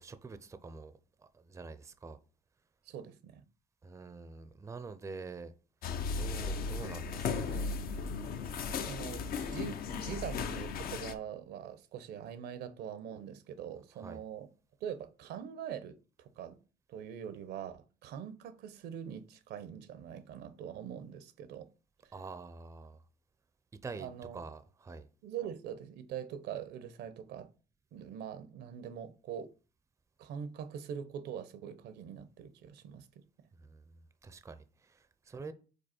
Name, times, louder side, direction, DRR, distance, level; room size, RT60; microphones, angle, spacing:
voice 1, 0.0-2.2 3.8-5.5 6.1-7.7 14.0-14.2 22.1-23.0 23.8-25.1 33.6-35.5, right 4 dB, 15° right, 0.5 m, -46 dB
voice 2, 2.9-3.4 8.9-14.5 14.8-16.6 16.9-21.7 24.0-24.4 25.2-27.5 27.9-29.5 30.2-33.5, right 9 dB, 80° right, 0.8 m, -43 dB
sound 1, 5.8-11.1, left 5 dB, 60° left, 0.7 m, -36 dB
5.3 x 4.1 x 4.3 m
cardioid pair, 110°, 17 cm